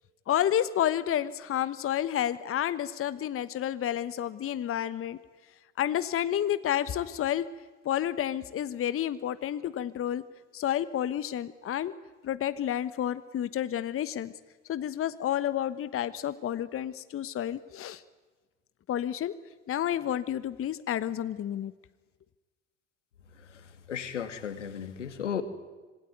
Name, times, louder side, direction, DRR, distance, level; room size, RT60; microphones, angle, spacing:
voice 1, 0.3-5.2 5.8-7.5 7.8-10.2 10.5-11.9 12.2-14.3 14.7-18.0 18.9-19.3 19.7-21.7, left 11 dB, 40° left, 14 dB, 1.2 m, -30 dB
voice 2, 23.3-25.4, left 8 dB, 85° left, 10 dB, 2.2 m, -35 dB
26.0 x 21.0 x 9.4 m, 1.3 s
hypercardioid pair, 70°, 35 cm